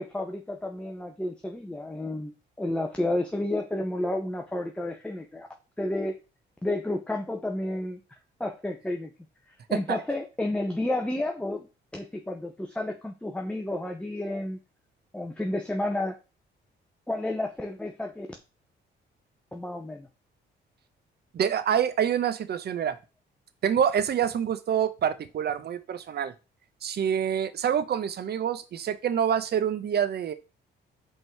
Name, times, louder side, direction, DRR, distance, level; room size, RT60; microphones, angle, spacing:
voice 1, 0.0-5.5 5.8-6.1 6.6-8.0 8.4-9.1 9.5-11.7 11.9-14.6 15.1-16.2 17.1-18.3 19.5-20.1, left 1 dB, 5° left, 3 dB, 0.8 m, -31 dB
voice 2, 9.7-10.0 21.3-23.0 23.6-26.3 26.8-30.3, right 8 dB, 55° right, 13 dB, 0.8 m, -26 dB
5.4 x 3.8 x 4.5 m, 0.29 s
cardioid pair, 90°, 20 cm